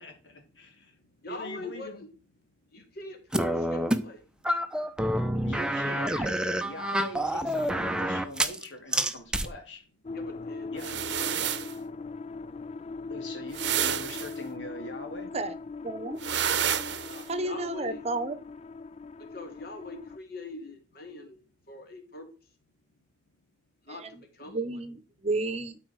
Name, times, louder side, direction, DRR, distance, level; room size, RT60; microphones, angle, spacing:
voice 1, 0.0-0.9 1.3-2.0 5.4-9.8 10.7-10.8 13.1-15.3, left 1 dB, 80° left, 3 dB, 3.2 m, -42 dB
voice 2, 0.7-2.1 2.7-4.3 4.7-4.8 10.1-11.7 17.1-18.0 19.2-22.3 23.8-24.8, left 2 dB, 55° left, 4 dB, 2.6 m, -43 dB
sound 1, 3.3-4.0 4.4-8.7 8.9-9.5, equal, 5° right, 0.7 m, -28 dB
sound 2, 10.0-20.2, left 3 dB, 35° left, 0.4 m, -40 dB
sound 3, 10.8-11.7 13.5-14.3 16.2-17.2, right 9 dB, 70° right, 0.8 m, -29 dB
voice 3, 15.8-16.2 17.3-18.4 23.9-24.1 24.5-25.8, right 2 dB, 35° right, 12 dB, 0.9 m, -32 dB
12.5 x 4.9 x 4.7 m, 0.34 s
head